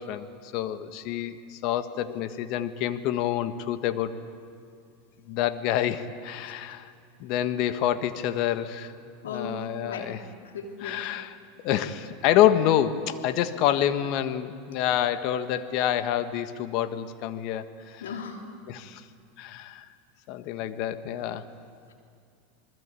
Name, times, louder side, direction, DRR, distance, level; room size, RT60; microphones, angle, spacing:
voice 1, 0.0-4.2 5.3-6.9 7.2-8.9 9.2-10.2 10.8-11.4 11.6-18.1 18.7-19.0 19.4-19.9 20.3-21.4, left 11 dB, 55° left, 10 dB, 1.5 m, -27 dB
voice 2, 9.2-9.6 9.9-10.1 10.5-11.0 18.0-18.5, left 5 dB, 85° left, 2 dB, 3.4 m, -36 dB
27.5 x 21.0 x 8.4 m, 2.3 s
hypercardioid pair, 95°, 0 cm